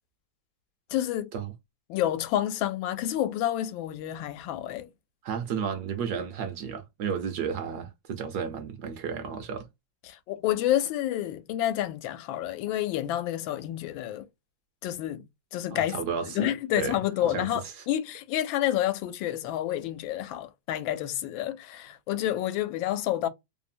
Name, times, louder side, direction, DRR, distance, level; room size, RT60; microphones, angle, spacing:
voice 1, 0.9-1.3 1.9-4.9 10.1-14.3 14.8-15.2 15.5-23.3, left 12 dB, 85° left, 1.3 m, -29 dB
voice 2, 5.2-9.7 15.7-16.5 16.8-17.5, right 7 dB, 65° right, 1.1 m, -33 dB
3.2 x 2.0 x 2.5 m
omnidirectional pair, 2.1 m